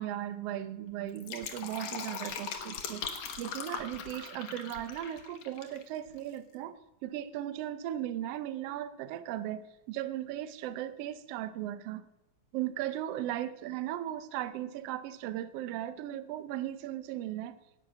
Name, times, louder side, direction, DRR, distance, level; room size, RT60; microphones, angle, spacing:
voice 1, 0.0-3.1 3.4-6.7 7.0-12.0 12.5-17.6, right 12 dB, 70° right, 14 dB, 1.5 m, -37 dB
Fill (with liquid), 1.0-5.8 6.1-6.2, left 7 dB, 65° left, 2.4 m, -40 dB
17.5 x 8.2 x 6.1 m, 0.95 s
omnidirectional pair, 3.4 m